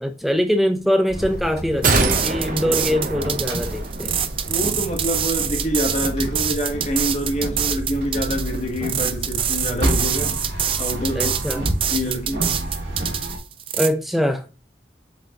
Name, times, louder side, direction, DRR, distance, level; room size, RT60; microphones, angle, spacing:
voice 1, 0.0-4.1 11.2-11.6 13.7-14.4, equal, ahead, 0.7 m, -23 dB
sound 1, 1.1-13.4, right 1 dB, 75° right, 2.0 m, -29 dB
sound 2, 1.8-13.9, right 9 dB, 30° right, 0.4 m, -25 dB
sound 3, 1.8-4.2 4.5-4.6, right 3 dB, 50° right, 0.9 m, -24 dB
voice 2, 4.5-11.6 11.9-12.6, equal, 40° left, 1.4 m, -26 dB
7.3 x 4.8 x 3.0 m
head